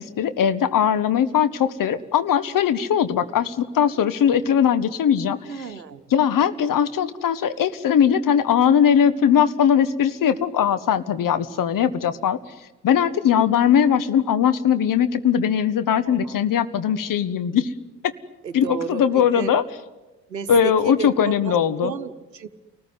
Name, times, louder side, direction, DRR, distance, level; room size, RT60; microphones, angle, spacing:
voice 1, 0.0-5.4 6.1-12.4 12.8-17.7 18.5-19.6 20.5-21.9, left 8 dB, 40° left, 13 dB, 1.5 m, -20 dB
voice 2, 5.5-6.0 16.0-16.3 18.4-19.5 20.3-22.5, right 6 dB, 85° right, 12 dB, 1.0 m, -33 dB
28.5 x 19.5 x 9.6 m, 1.1 s
figure-of-eight pair, 55°, 49 cm